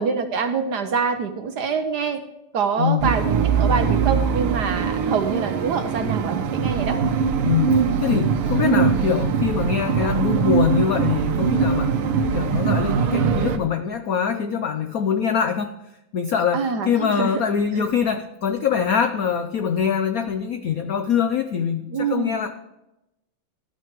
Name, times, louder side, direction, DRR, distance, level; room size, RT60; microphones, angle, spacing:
voice 1, 0.0-2.2 2.5-7.0 16.5-17.4 21.9-22.3, right 5 dB, 60° right, 8 dB, 1.2 m, -25 dB
voice 2, 2.8-3.1 7.4-12.0 12.3-15.7 16.1-22.5, left 7 dB, 85° left, 7 dB, 0.8 m, -23 dB
sound 1, 3.0-13.6, right 6 dB, 85° right, 1.8 m, -22 dB
12.5 x 8.9 x 3.1 m, 0.90 s
omnidirectional pair, 2.4 m